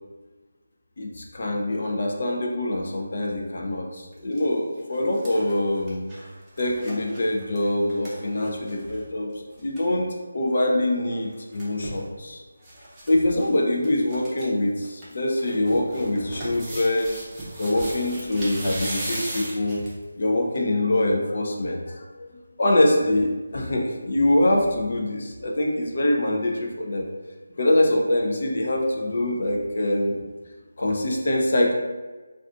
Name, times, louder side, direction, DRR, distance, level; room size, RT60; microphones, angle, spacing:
voice 1, 1.0-6.0 6.6-9.3 9.6-12.4 13.1-17.2 17.6-19.8 20.2-21.8 22.2-22.3 22.6-27.1 27.6-30.2 30.8-31.7, left 1 dB, 50° left, 0 dB, 0.4 m, -24 dB
sound 1, 4.1-4.4 4.8-9.0 9.3-9.4 9.6-9.9 11.1-12.0 12.6-13.1 13.4-13.5 13.8-14.5 14.8-20.0 20.6-20.7, right 1 dB, 10° right, 0.5 m, -37 dB
2.4 x 2.3 x 3.6 m, 1.3 s
figure-of-eight pair, 170°, 0 cm